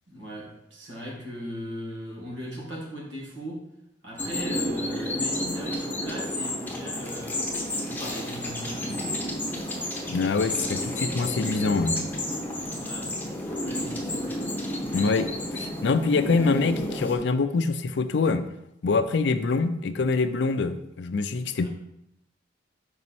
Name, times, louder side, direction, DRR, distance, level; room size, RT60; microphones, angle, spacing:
voice 1, 0.1-3.7 4.0-7.5 7.7-9.3 12.7-13.1 13.5-14.6 21.6-21.7, equal, 85° right, -3 dB, 2.0 m, -38 dB
sound 1, 4.2-17.2, left 1 dB, 10° left, 0.8 m, -31 dB
voice 2, 10.1-12.0 14.9-18.4 18.8-21.7, left 4 dB, 65° left, 10 dB, 0.4 m, -25 dB
5.4 x 4.3 x 4.2 m, 0.82 s
head